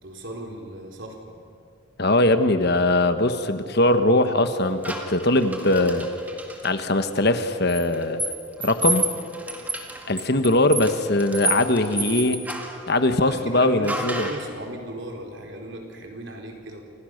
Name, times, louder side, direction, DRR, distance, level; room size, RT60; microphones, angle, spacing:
voice 1, 0.0-1.4 13.1-16.8, right 1 dB, 60° right, 2 dB, 4.4 m, -37 dB
voice 2, 2.0-6.1 6.6-8.2 8.6-9.0 10.1-12.4 12.9-14.3, left 2 dB, 50° left, 9 dB, 1.4 m, -21 dB
sound 1, 4.8-6.7 7.7-12.8 13.9-14.5, right 2 dB, 5° right, 1.9 m, -30 dB
29.5 x 27.5 x 6.7 m, 2.3 s
head